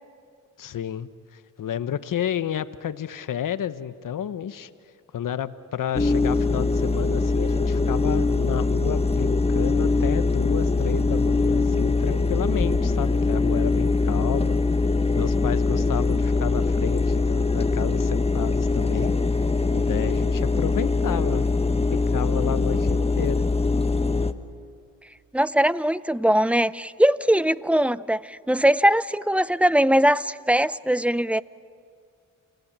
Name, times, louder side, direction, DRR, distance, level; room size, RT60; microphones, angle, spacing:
voice 1, 0.6-4.7 5.1-14.6 15.2-19.1 19.7-21.5 21.9-23.5, left 9 dB, 70° left, 13 dB, 1.0 m, -31 dB
sound 1, 5.9-24.3, left 3 dB, 20° left, 1.2 m, -22 dB
voice 2, 25.3-31.4, right 1 dB, 5° right, 17 dB, 0.6 m, -21 dB
29.5 x 18.0 x 8.9 m, 2.2 s
cardioid pair, 55°, 33 cm